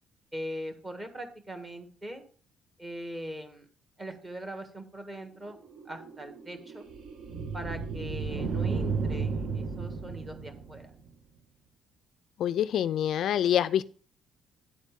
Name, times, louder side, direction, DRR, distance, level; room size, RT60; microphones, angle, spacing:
voice 1, 0.3-2.2 2.8-3.6 4.0-5.6 5.8-6.8 7.5-10.9, equal, 15° right, 6 dB, 1.5 m, -41 dB
sound 1, 5.5-11.1, right 4 dB, 50° right, 1.3 m, -33 dB
voice 2, 12.4-13.8, left 10 dB, 55° left, 13 dB, 0.4 m, -26 dB
9.8 x 8.2 x 3.6 m, 0.41 s
cardioid pair, 175°, 0 cm